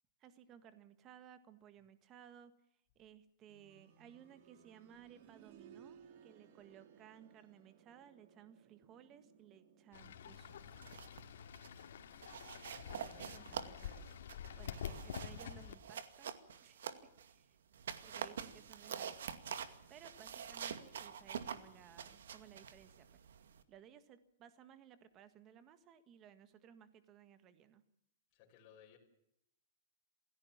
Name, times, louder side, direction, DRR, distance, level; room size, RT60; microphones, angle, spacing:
voice 1, 0.2-2.5 2.9-10.6 12.9-14.2 14.6-16.3 16.6-17.6 18.0-19.3 19.9-23.1 23.7-27.8, right 9 dB, 20° right, 12 dB, 1.7 m, -60 dB
sound 1, 3.5-14.2 14.6-14.7 15.6-15.7, right 8 dB, 40° right, 2.3 m, -64 dB
Fowl / Bird, 9.9-15.7, left 8 dB, 70° left, 2.4 m, -48 dB
sound 2, 10.6-11.2 11.5-11.8 12.2-17.3 17.7-23.6, right 7 dB, 80° right, 2.2 m, -47 dB
voice 2, 12.5-13.5 17.9-18.6 28.3-29.0, left 8 dB, 30° left, 0 dB, 5.5 m, -64 dB
27.5 x 16.5 x 7.3 m, 0.77 s
supercardioid pair, 170°, 0 cm